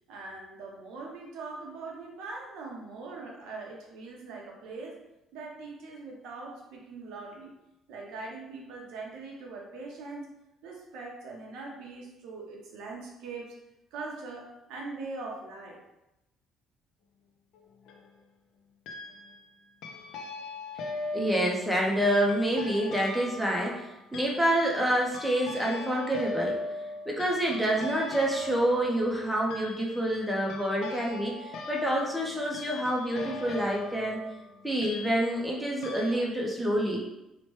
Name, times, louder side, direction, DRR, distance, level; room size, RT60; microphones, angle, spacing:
voice 1, 0.1-5.0 5.3-7.5 7.9-10.3 10.6-13.5 13.9-15.8, right 3 dB, 85° right, -1 dB, 0.6 m, -41 dB
sound 1, 17.5-18.1 18.9-19.5 19.8-35.5 35.8-36.2, left 3 dB, 80° left, 0.4 m, -40 dB
voice 2, 21.1-26.6 27.1-34.2 34.6-37.0, right 1 dB, 5° right, -2 dB, 0.5 m, -27 dB
2.8 x 2.1 x 3.0 m, 0.92 s
cardioid pair, 130°, 0 cm